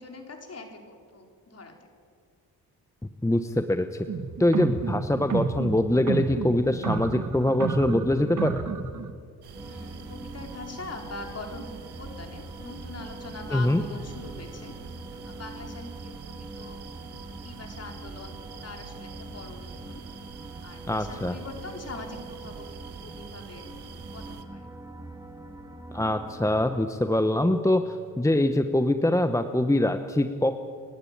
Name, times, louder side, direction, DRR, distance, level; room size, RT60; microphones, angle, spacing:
voice 1, 0.0-1.7 9.6-14.7 15.2-16.8 17.4-20.0 20.6-23.7 24.1-24.7, left 3 dB, 40° left, 3 dB, 4.0 m, -42 dB
voice 2, 3.2-4.1 4.4-8.6 13.5-13.8 20.9-21.3 25.9-30.6, left 1 dB, 10° left, 9 dB, 0.9 m, -24 dB
sound 1, 4.1-9.1, right 5 dB, 50° right, 1.8 m, -31 dB
sound 2, 9.4-24.4, right 8 dB, 85° right, 1.6 m, -46 dB
sound 3, 9.5-26.9, right 1 dB, 10° right, 1.9 m, -43 dB
29.0 x 12.0 x 8.7 m, 2.1 s
cardioid pair, 80°, 38 cm